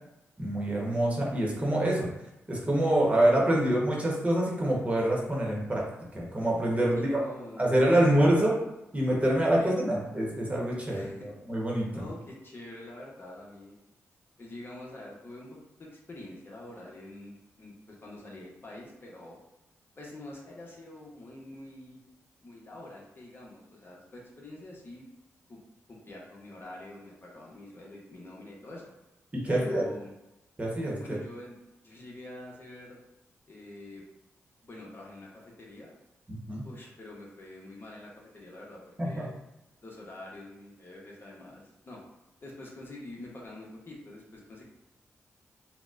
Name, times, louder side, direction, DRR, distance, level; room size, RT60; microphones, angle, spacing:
voice 1, 0.4-2.1 2.5-7.2 7.6-8.5 8.9-12.1 29.3-29.9 30.6-31.2 36.3-36.6 39.0-39.3, right 1 dB, 25° right, -3 dB, 0.9 m, -26 dB
voice 2, 7.0-7.6 8.0-8.3 9.6-9.8 10.9-11.3 11.9-13.8 14.4-17.3 17.6-19.4 20.0-22.0 22.4-25.1 25.5-25.6 25.9-28.9 29.5-30.1 31.0-33.0 33.4-34.1 34.6-35.9 36.6-39.3 39.8-42.0 42.4-44.6, left 1 dB, 45° left, -3 dB, 0.9 m, -46 dB
4.0 x 2.1 x 2.4 m, 0.92 s
cardioid pair, 55°, 5 cm